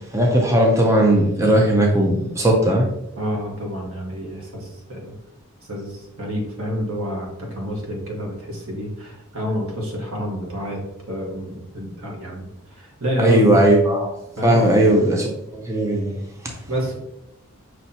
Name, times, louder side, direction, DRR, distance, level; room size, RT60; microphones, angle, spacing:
voice 1, 0.1-2.9 13.2-14.1 14.4-16.1, right 1 dB, 15° right, 0 dB, 0.5 m, -17 dB
voice 2, 3.2-5.2 5.7-10.8 11.1-12.5 12.7-13.7 14.4-14.6 16.7-17.0, equal, 80° right, -1 dB, 1.3 m, -28 dB
5.7 x 3.1 x 2.8 m, 0.85 s
head